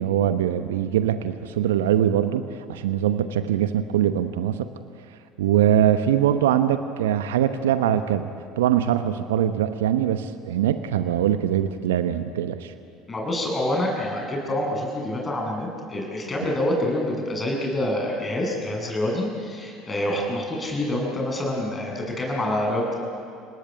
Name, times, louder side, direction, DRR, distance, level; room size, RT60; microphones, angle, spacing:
voice 1, 0.0-4.7 5.4-8.3 8.6-12.7, right 10 dB, 75° right, 10 dB, 0.9 m, -22 dB
voice 2, 13.1-23.0, left 1 dB, 25° left, 0 dB, 7.7 m, -26 dB
30.0 x 19.0 x 8.9 m, 2.5 s
figure-of-eight pair, 65°, 0 cm